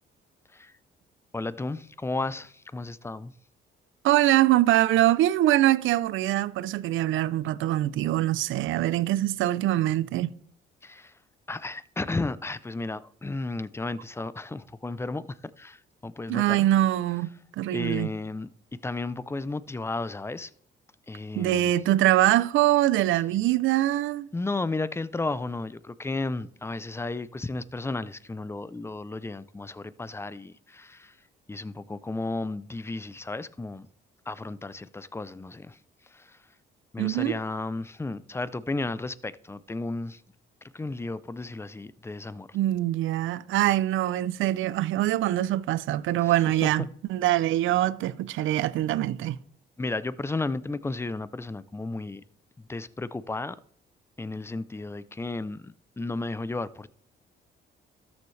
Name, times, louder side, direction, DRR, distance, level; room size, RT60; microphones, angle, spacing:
voice 1, 1.3-3.3 10.8-11.1 11.5-16.7 17.7-18.5 18.8-20.5 21.1-21.7 24.3-31.2 31.5-33.9 34.3-35.8 36.1-36.4 36.9-40.2 40.7-42.6 46.2-46.3 46.8-46.9 48.3-48.5 49.8-52.2 52.6-53.6 54.2-56.9, left 3 dB, 15° left, 0.5 m, -33 dB
voice 2, 4.0-10.3 16.3-17.3 17.6-18.1 21.4-24.3 37.0-37.3 42.5-49.4, right 14 dB, 80° right, 0.5 m, -23 dB
13.5 x 7.1 x 3.3 m
cardioid pair, 90°, 20 cm